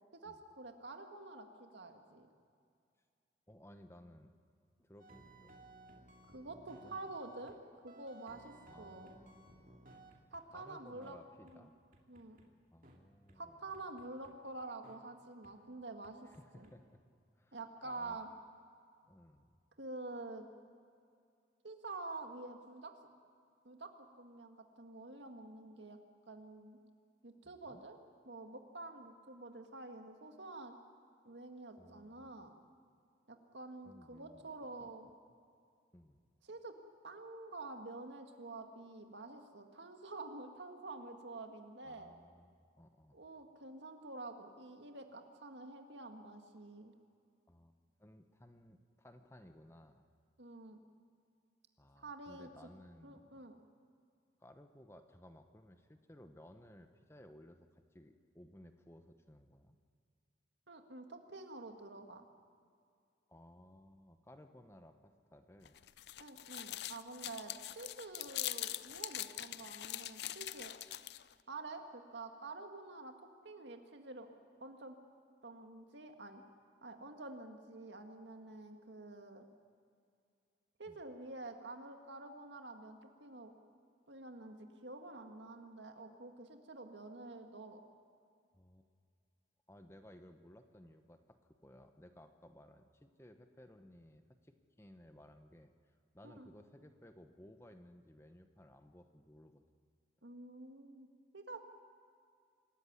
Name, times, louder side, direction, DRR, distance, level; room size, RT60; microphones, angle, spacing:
voice 1, 0.2-2.3 6.3-7.6 7.8-9.1 10.3-11.2 11.4-11.7 12.1-12.4 13.4-16.2 16.5-16.7 17.5-18.3 19.8-20.5 21.6-23.0 23.6-26.0 26.3-26.8 27.2-28.0 28.3-30.8 31.2-32.6 33.3-35.1 36.4-36.8 37.0-42.1 43.1-46.9 50.4-50.8 52.0-52.5 53.0-53.6 60.7-62.3 66.2-70.7 71.5-74.3 74.6-75.0 75.4-76.4 76.8-79.4 80.8-83.5 84.1-87.8 96.2-96.5 100.2-101.1 101.3-101.6, right 2 dB, 75° right, 5 dB, 1.9 m, -48 dB
voice 2, 3.5-4.3 4.8-5.5 6.8-7.0 8.6-9.8 10.5-11.7 12.7-13.8 16.2-17.0 17.3-18.2 19.1-19.6 27.4-27.8 31.8-32.4 33.8-34.5 34.8-34.9 35.9-36.2 41.8-43.2 47.5-47.7 48.0-50.1 51.8-53.3 54.4-59.8 63.3-65.8 69.6-69.7 80.9-81.0 88.5-88.9 89.7-91.4 91.6-95.7 96.1-99.6, left 1 dB, 15° left, 7 dB, 1.0 m, -59 dB
sound 1, 5.0-7.6 7.9-10.6 11.0-11.2 11.5-11.6 11.9-12.5 12.8-13.0 13.3-13.4 13.7-14.3 14.8-15.0 15.4-15.5 16.0-16.7, right 2 dB, 50° right, 2.5 m, -59 dB
sound 2, 65.6-71.3, left 14 dB, 65° left, 0.5 m, -43 dB
25.5 x 14.5 x 9.5 m, 2.3 s
head